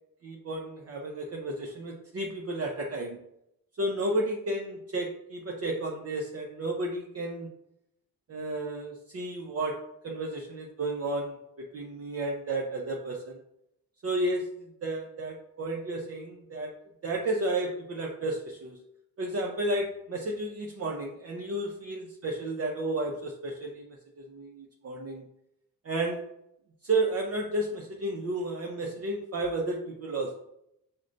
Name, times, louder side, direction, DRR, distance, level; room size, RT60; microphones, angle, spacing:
voice 1, 0.2-3.2 3.8-7.5 8.3-9.8 10.0-13.4 14.0-16.7 17.0-18.8 19.2-25.2 25.8-26.2 26.8-30.3, right 2 dB, 40° right, -1 dB, 0.5 m, -32 dB
6.1 x 2.1 x 2.5 m, 0.80 s
wide cardioid pair, 130°, 37 cm